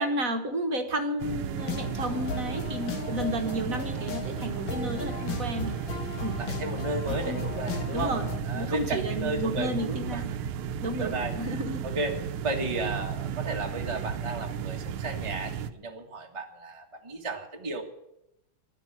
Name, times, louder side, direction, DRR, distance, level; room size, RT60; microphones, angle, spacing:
voice 1, 0.0-5.7 6.2-6.4 7.1-7.4 7.9-8.3 8.5-10.3 10.8-11.8, right 1 dB, 45° right, 6 dB, 1.5 m, -32 dB
sound 1, 1.2-15.7, right 8 dB, 75° right, 1.6 m, -34 dB
sound 2, 1.6-8.4, left 5 dB, 65° left, 2.1 m, -36 dB
voice 2, 6.4-8.1 8.4-10.2 11.0-17.8, right 2 dB, 15° right, 1 dB, 1.4 m, -34 dB
11.5 x 10.0 x 9.1 m, 0.84 s
omnidirectional pair, 2.4 m